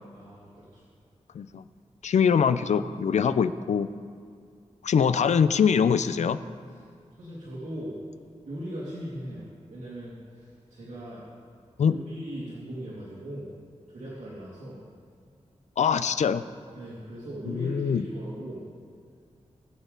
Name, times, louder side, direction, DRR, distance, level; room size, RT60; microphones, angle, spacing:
voice 1, 0.1-0.8 6.7-6.8 7.1-8.0 8.4-11.2 11.8-13.5 13.9-14.8 16.7-18.6, right 1 dB, 90° right, -8 dB, 2.6 m, -39 dB
voice 2, 2.0-3.9 4.8-6.4 11.8-11.9 15.8-16.4 17.5-18.0, left 7 dB, 75° left, 13 dB, 0.5 m, -23 dB
20.0 x 7.2 x 4.0 m, 2.3 s
cardioid pair, 75°, 12 cm